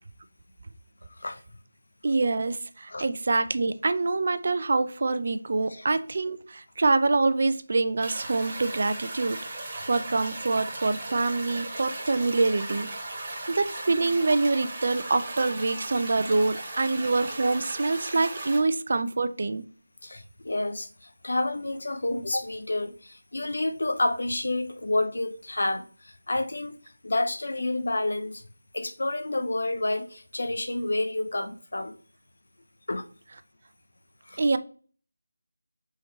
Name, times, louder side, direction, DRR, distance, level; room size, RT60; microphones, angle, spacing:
voice 1, 1.1-1.4 2.9-3.0 5.7-5.8 20.0-26.8 27.0-28.4 28.7-31.9 32.9-33.1 34.3-34.4, left 2 dB, 65° left, 0.6 m, -29 dB
voice 2, 2.0-9.4 9.9-12.9 13.5-19.6 34.4-34.6, right 3 dB, 50° right, 0.4 m, -25 dB
sound 1, 8.0-18.6, right 2 dB, 30° right, 1.0 m, -37 dB
4.1 x 3.7 x 3.0 m
figure-of-eight pair, 165°, 0 cm